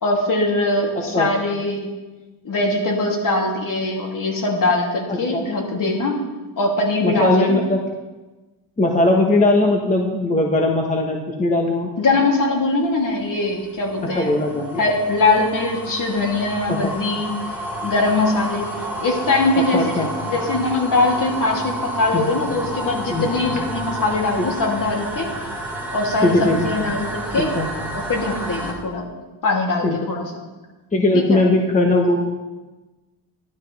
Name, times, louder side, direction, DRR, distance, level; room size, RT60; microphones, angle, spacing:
voice 1, 0.0-1.9 2.4-6.2 6.6-7.6 12.0-14.3 14.8-17.3 17.8-18.7 19.0-25.3 25.9-27.5 27.9-29.0 29.4-30.2 31.3-31.4, left 2 dB, 50° left, -1 dB, 3.0 m, -21 dB
voice 2, 5.1-5.4 7.0-7.8 8.8-11.9 14.0-14.8 16.7-16.9 19.7-20.1 22.1-22.3 23.1-23.3 26.2-26.7 27.3-27.7 29.8-30.0 30.9-32.3, left 2 dB, 20° left, 0 dB, 1.4 m, -19 dB
sound 1, 13.1-28.7, right 1 dB, 5° right, 3.8 m, -30 dB
15.0 x 12.0 x 3.5 m, 1.2 s
cardioid pair, 100°, 42 cm